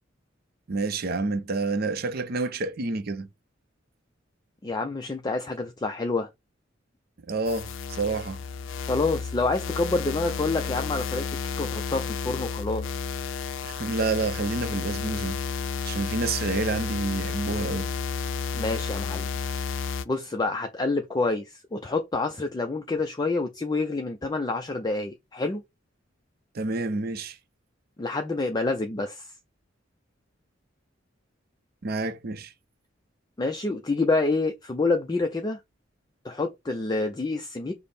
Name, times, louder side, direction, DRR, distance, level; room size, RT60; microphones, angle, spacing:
voice 1, 0.7-3.3 7.3-8.4 13.6-15.4 15.8-17.9 26.5-27.4 31.8-32.5, right 3 dB, 50° right, 0.6 m, -29 dB
voice 2, 4.6-6.3 8.8-11.3 11.5-13.0 18.5-19.3 20.1-25.6 28.0-29.3 33.4-35.6 36.2-37.7, left 3 dB, 20° left, 0.4 m, -27 dB
sound 1, 7.5-20.0, left 5 dB, 85° left, 0.4 m, -32 dB
5.1 x 2.0 x 4.1 m
head